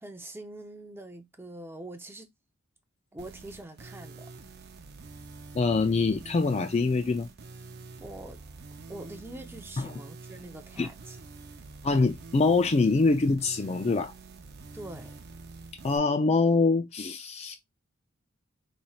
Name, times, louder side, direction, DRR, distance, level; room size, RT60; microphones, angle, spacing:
voice 1, 0.0-2.3 3.1-4.3 8.0-8.4 8.9-11.2 14.7-15.1, right 1 dB, 10° right, 0.6 m, -44 dB
sound 1, 3.2-16.0, right 3 dB, 50° right, 0.6 m, -46 dB
voice 2, 5.5-7.3 9.8-9.9 10.8-10.9 11.8-14.1 15.8-17.6, left 3 dB, 30° left, 0.4 m, -24 dB
4.2 x 3.2 x 2.4 m
head